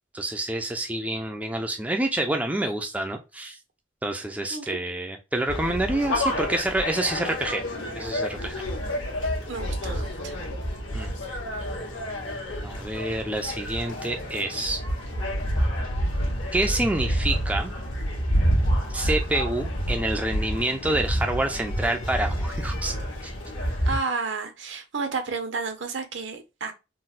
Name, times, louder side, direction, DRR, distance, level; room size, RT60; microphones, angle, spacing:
voice 1, 0.1-3.6 4.0-7.6 7.9-8.5 10.9-11.1 12.6-14.8 16.5-17.7 18.9-22.9 23.2-23.3, right 1 dB, 10° right, 0.4 m, -27 dB
sound 1, 5.5-24.0, equal, 75° left, 1.2 m, -28 dB
voice 2, 9.5-10.4 23.9-26.7, right 4 dB, 70° right, 0.8 m, -31 dB
3.9 x 2.1 x 2.4 m
head